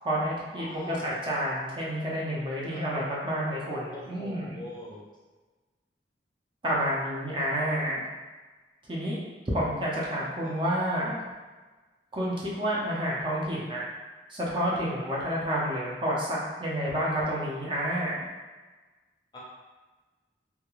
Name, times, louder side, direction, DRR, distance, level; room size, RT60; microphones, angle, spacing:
voice 1, 0.0-4.6 6.6-8.0 8.9-11.2 12.1-13.8 14.3-18.2, equal, 30° right, -5 dB, 0.5 m, -29 dB
voice 2, 0.5-1.1 2.7-2.8 3.9-5.0 10.4-10.5 19.3-19.4, left 1 dB, 25° left, -5 dB, 0.5 m, -42 dB
2.3 x 2.2 x 3.0 m, 1.3 s
head